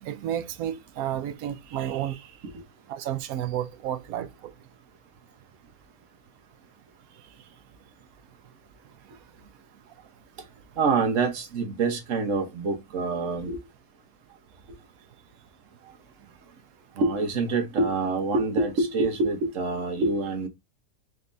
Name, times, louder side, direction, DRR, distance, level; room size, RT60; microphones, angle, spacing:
voice 1, 0.0-2.3 2.9-4.5 15.8-15.9, right 11 dB, 80° right, 1.0 m, -31 dB
voice 2, 10.8-13.6 17.0-20.5, right 3 dB, 60° right, 1.4 m, -26 dB
4.2 x 3.4 x 2.6 m
omnidirectional pair, 1.6 m